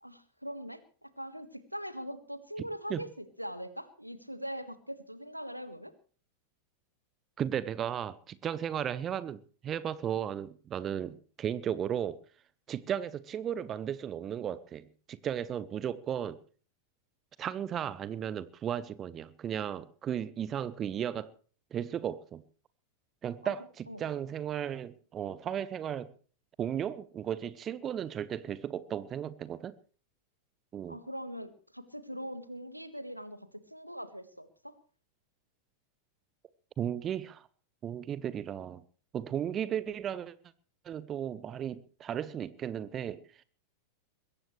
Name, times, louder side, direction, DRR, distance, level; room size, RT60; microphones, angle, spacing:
voice 1, 0.0-5.9 23.4-23.5 23.9-24.0 30.9-34.8, equal, 90° right, 1.5 m, -42 dB
voice 2, 7.4-12.2 12.7-16.4 17.4-21.3 21.7-22.4 23.2-26.1 26.6-29.7 30.7-31.0 36.8-37.5 37.8-38.8 39.1-40.3 40.8-43.2, right 9 dB, 25° right, 0.8 m, -35 dB
21.5 x 17.0 x 3.2 m
figure-of-eight pair, 90°, 0 cm